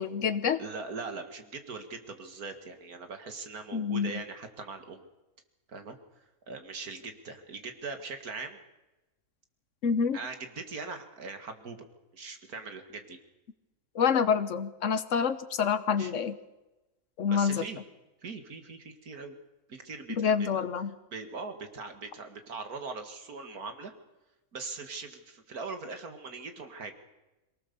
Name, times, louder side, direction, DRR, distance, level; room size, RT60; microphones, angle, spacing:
voice 1, 0.0-0.6 3.7-4.2 9.8-10.2 13.9-16.4 17.2-17.6 20.1-20.9, left 6 dB, 60° left, 13 dB, 1.4 m, -27 dB
voice 2, 0.6-5.1 5.7-6.0 6.5-8.6 10.1-11.8 12.1-13.2 16.0-16.1 17.3-17.8 18.2-19.3 19.7-20.6 21.1-23.9 24.5-26.9, right 4 dB, 90° right, 7 dB, 2.5 m, -41 dB
23.0 x 18.5 x 6.9 m, 1.0 s
omnidirectional pair, 1.5 m